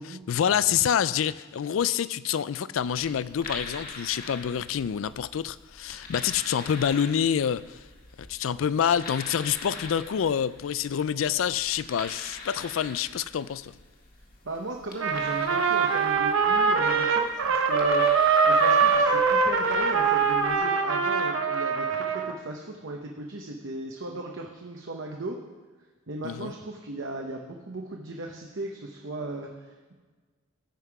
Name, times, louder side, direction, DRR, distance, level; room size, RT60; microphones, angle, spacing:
voice 1, 0.3-7.8 8.2-13.7 26.2-26.5, left 8 dB, 75° left, 17 dB, 0.4 m, -27 dB
sound 1, 2.7-20.6, left 3 dB, 45° left, 1.8 m, -44 dB
voice 2, 14.4-18.2 18.4-25.4 26.1-29.9, right 2 dB, 65° right, 1 dB, 1.0 m, -37 dB
Trumpet, 15.0-22.3, right 5 dB, 90° right, 0.9 m, -23 dB
16.0 x 5.7 x 4.8 m, 1.3 s
head